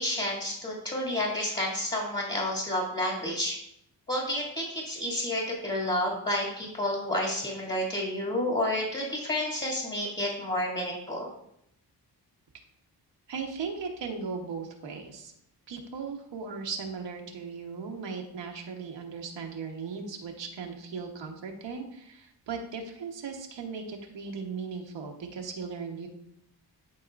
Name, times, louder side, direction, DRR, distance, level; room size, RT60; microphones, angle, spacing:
voice 1, 0.0-3.6 4.1-11.3, left 1 dB, 25° left, -3 dB, 2.1 m, -30 dB
voice 2, 13.3-15.3 15.7-26.1, right 5 dB, 85° right, 2 dB, 1.1 m, -37 dB
12.0 x 4.2 x 2.5 m, 0.75 s
cardioid pair, 80°, 42 cm